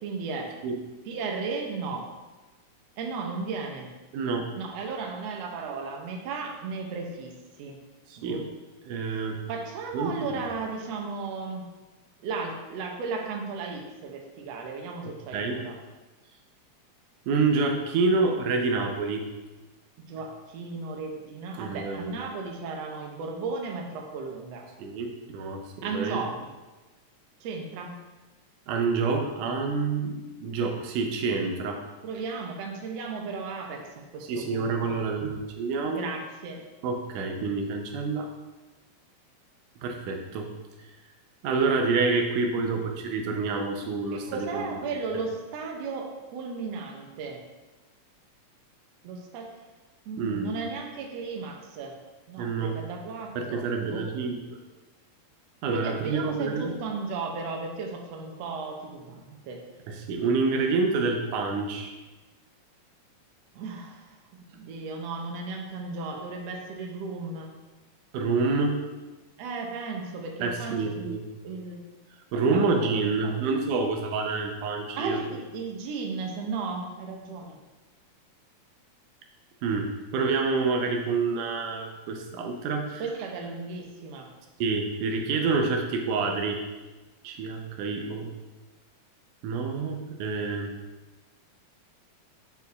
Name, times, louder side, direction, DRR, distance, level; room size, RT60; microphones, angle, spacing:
voice 1, 0.0-0.5 1.1-2.1 3.0-3.9 4.6-7.3 7.6-7.8 8.2-8.4 9.1-11.7 12.2-15.8 20.1-24.7 25.8-26.4 27.4-27.9 32.0-35.0 35.9-36.6 44.1-47.4 49.0-49.5 50.1-52.0 52.3-54.1 55.7-59.6 63.5-67.5 69.4-71.1 71.4-71.8 72.3-73.4 75.0-77.6 83.0-84.3, right 4 dB, 65° right, 1 dB, 1.9 m, -35 dB
voice 2, 4.1-4.5 8.1-8.4 8.9-9.4 9.9-10.1 15.0-15.6 17.3-19.2 21.6-22.1 24.8-26.2 28.7-30.1 30.4-31.8 34.3-36.1 36.8-38.3 39.8-40.5 41.4-44.7 50.2-50.6 52.4-52.8 53.4-54.4 55.6-56.7 59.9-61.9 68.1-68.8 70.4-71.2 72.3-75.2 79.6-79.9 80.1-83.0 84.6-86.6 87.2-88.3 89.4-90.7, right 4 dB, 85° right, 3 dB, 2.3 m, -27 dB
8.5 x 4.5 x 4.1 m, 1.1 s
omnidirectional pair, 3.5 m